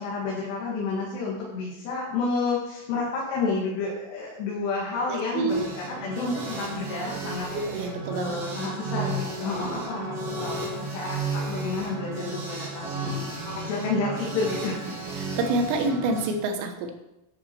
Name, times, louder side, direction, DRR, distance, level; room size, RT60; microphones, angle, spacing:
voice 1, 0.0-7.5 8.1-14.8, left 3 dB, 75° left, -4 dB, 3.9 m, -30 dB
voice 2, 5.1-5.7 7.5-8.4 9.6-9.7 15.2-16.9, right 3 dB, 90° right, 6 dB, 3.4 m, -27 dB
sound 1, 5.5-16.3, right 2 dB, 40° right, 2.6 m, -33 dB
11.0 x 9.8 x 4.5 m, 0.94 s
omnidirectional pair, 5.0 m